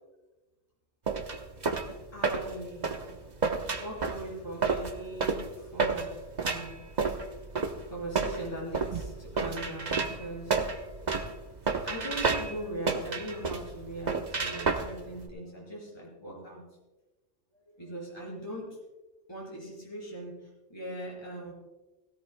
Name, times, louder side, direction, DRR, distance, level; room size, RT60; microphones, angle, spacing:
sound 1, 1.1-15.3, right 4 dB, 40° right, 1.0 m, -31 dB
voice 1, 2.1-2.8 3.8-6.8 7.8-10.9 11.8-16.6 17.7-18.7 19.3-20.4 20.7-21.5, right 1 dB, 20° left, -4 dB, 4.7 m, -40 dB
17.5 x 17.0 x 2.2 m, 1.1 s
omnidirectional pair, 1.3 m